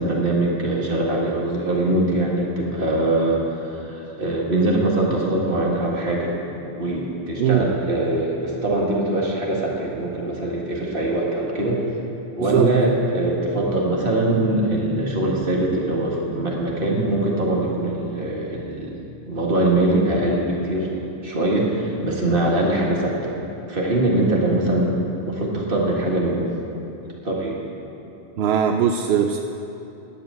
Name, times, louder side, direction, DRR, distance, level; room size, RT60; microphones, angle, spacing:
voice 1, 0.0-6.4 6.8-11.9 12.4-19.0 19.3-20.9 21.2-23.3 23.7-25.0 25.2-26.5 27.2-27.6, right 1 dB, 50° right, -3 dB, 2.0 m, -22 dB
voice 2, 12.4-12.7 28.4-29.4, right 8 dB, 65° right, 5 dB, 0.7 m, -20 dB
10.5 x 7.7 x 7.8 m, 2.9 s
omnidirectional pair, 1.2 m